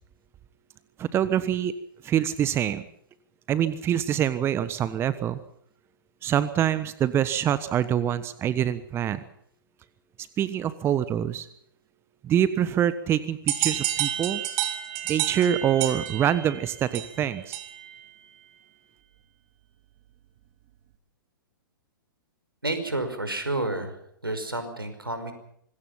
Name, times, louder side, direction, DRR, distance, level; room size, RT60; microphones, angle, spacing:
voice 1, 1.0-1.7 2.0-2.8 3.5-5.4 6.2-9.2 10.4-11.5 12.2-14.4 15.1-17.6, right 10 dB, 20° right, 14 dB, 1.2 m, -25 dB
sound 1, 13.5-18.0, right 12 dB, 40° right, 3.6 m, -30 dB
voice 2, 22.6-24.0 24.2-25.3, right 2 dB, 90° right, 8 dB, 5.4 m, -30 dB
26.0 x 21.5 x 5.8 m, 0.69 s
figure-of-eight pair, 110°, 12 cm